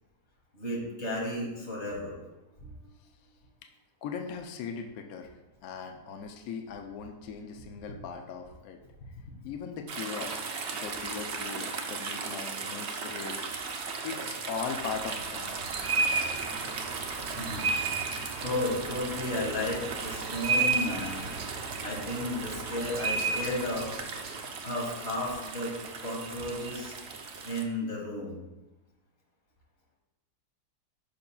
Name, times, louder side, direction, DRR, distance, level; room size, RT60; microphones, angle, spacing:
voice 1, 0.5-2.2 2.6-2.8 9.3-9.4 17.2-17.7 18.0-21.2 21.8-23.9 24.6-25.7 26.0-26.9 27.4-28.4, left 1 dB, 40° left, -2 dB, 1.9 m, -33 dB
voice 2, 4.0-5.3 5.6-8.8 9.4-13.5 14.0-15.6, left 6 dB, 65° left, 4 dB, 1.0 m, -39 dB
sound 1, 9.9-27.6, right 4 dB, 55° right, 0.8 m, -34 dB
11.5 x 5.3 x 2.3 m, 1.1 s
omnidirectional pair, 1.8 m